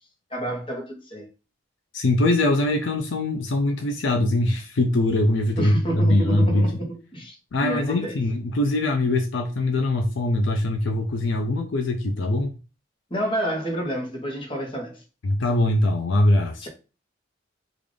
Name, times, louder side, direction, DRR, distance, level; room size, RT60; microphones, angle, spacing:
voice 1, 0.3-1.3 5.6-7.4 7.6-8.2 13.1-15.0 16.6-16.7, right 1 dB, 25° left, 0.9 m, -29 dB
voice 2, 1.9-6.7 7.5-12.5 15.2-16.7, left 1 dB, 65° left, 0.5 m, -22 dB
3.7 x 2.5 x 3.3 m
head